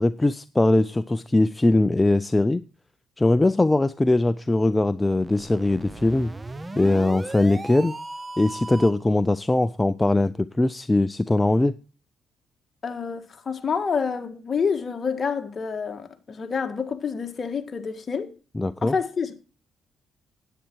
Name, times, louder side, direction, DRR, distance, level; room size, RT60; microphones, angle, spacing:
voice 1, 0.0-2.6 3.2-6.3 6.8-8.0 8.4-11.7 18.6-18.9, left 2 dB, 15° left, 0.4 m, -21 dB
sound 1, 5.2-9.1, right 2 dB, 20° right, 0.7 m, -37 dB
voice 2, 12.8-18.3 18.8-19.3, left 6 dB, 40° left, 1.5 m, -28 dB
10.0 x 8.6 x 4.5 m
cardioid pair, 90°, 0 cm